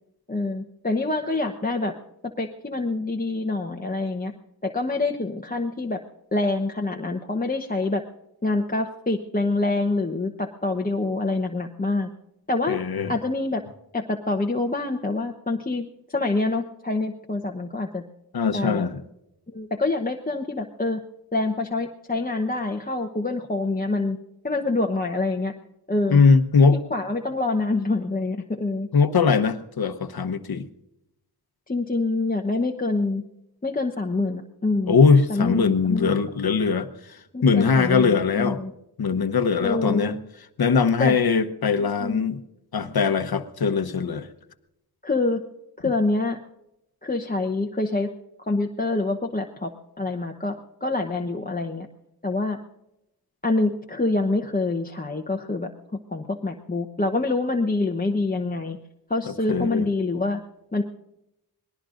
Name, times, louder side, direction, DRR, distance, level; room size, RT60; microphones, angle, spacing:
voice 1, 0.3-1.9 2.4-4.3 4.6-6.0 6.3-8.0 8.4-12.1 12.5-12.8 13.1-13.6 13.9-15.9 16.1-18.0 18.5-18.9 19.5-21.0 21.3-24.2 24.4-25.5 25.9-26.2 26.9-28.9 31.7-33.2 33.6-35.0 35.3-36.2 37.3-38.7 39.6-40.1 41.0-41.2 42.0-42.3 45.0-45.4 45.8-46.4 47.0-48.1 48.5-49.7 50.0-50.6 50.8-51.9 52.2-52.6 53.4-55.7 56.1-58.8 59.1-60.4 60.7-60.8, left 2 dB, 20° left, 2 dB, 1.0 m, -26 dB
voice 2, 12.7-13.1 18.3-19.0 26.1-26.8 28.9-30.7 34.9-36.9 37.4-38.6 39.0-40.2 40.6-42.4 42.7-44.3 59.2-59.8, left 5 dB, 65° left, 10 dB, 1.1 m, -21 dB
26.0 x 19.5 x 2.6 m, 0.87 s
cardioid pair, 50°, 40 cm